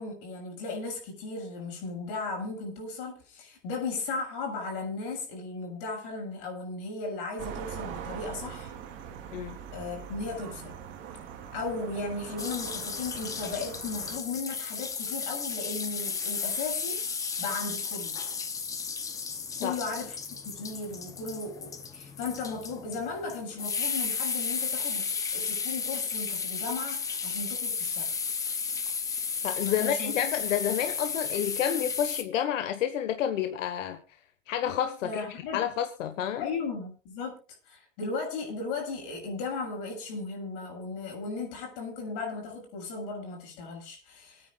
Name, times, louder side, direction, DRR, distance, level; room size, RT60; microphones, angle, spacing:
voice 1, 0.0-8.8 9.7-10.7 11.5-17.0 17.4-18.2 19.6-20.2 20.5-28.1 29.6-30.1 35.0-35.6 36.4-37.4 37.7-44.5, left 3 dB, 45° left, 7.2 m, -36 dB
sound 1, 7.4-14.2, right 8 dB, 30° right, 2.3 m, -42 dB
sound 2, 12.4-32.2, left 5 dB, 10° left, 0.7 m, -33 dB
voice 2, 29.4-34.0 34.5-35.2 35.5-36.4, left 10 dB, 80° left, 1.5 m, -29 dB
27.5 x 9.7 x 2.4 m
supercardioid pair, 165°, 38 cm